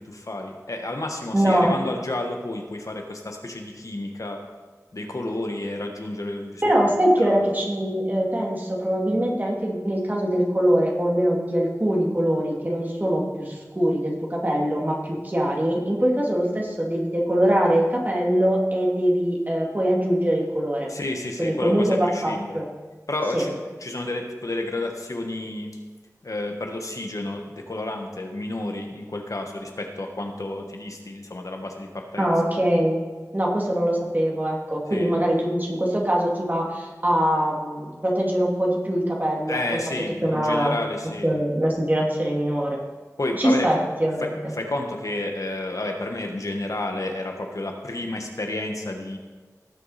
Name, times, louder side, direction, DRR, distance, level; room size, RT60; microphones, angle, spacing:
voice 1, 0.1-4.4 4.9-6.6 7.2-7.4 20.9-22.5 23.1-23.5 23.8-25.8 26.2-32.3 34.9-35.1 39.5-41.3 43.2-43.7 44.2-49.2, left 2 dB, 65° left, 3 dB, 1.4 m, -31 dB
voice 2, 1.3-1.7 6.6-20.9 21.4-22.7 23.3-23.4 32.2-33.0 33.3-39.6 40.2-40.7 41.2-42.8 43.4-44.4, equal, 30° right, -3 dB, 2.5 m, -23 dB
17.5 x 6.5 x 4.3 m, 1.3 s
wide cardioid pair, 50°, 6 cm